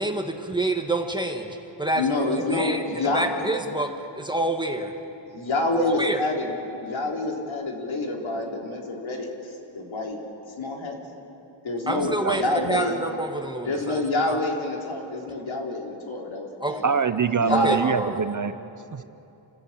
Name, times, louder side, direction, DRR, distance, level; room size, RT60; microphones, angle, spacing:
voice 1, 0.0-2.1 2.5-2.8 3.1-4.9 5.8-6.2 11.9-14.4 16.6-16.8 17.5-18.2, right 1 dB, 10° right, 4 dB, 1.6 m, -28 dB
voice 2, 1.9-3.5 5.3-9.3 9.7-10.2 10.6-11.0 11.6-13.0 13.6-16.8 17.4-17.8, left 2 dB, 65° left, 0 dB, 3.7 m, -27 dB
voice 3, 11.9-12.8 16.8-18.5 18.9-19.0, right 6 dB, 40° right, 11 dB, 0.8 m, -25 dB
29.5 x 14.5 x 8.7 m, 2.8 s
wide cardioid pair, 100°, 50 cm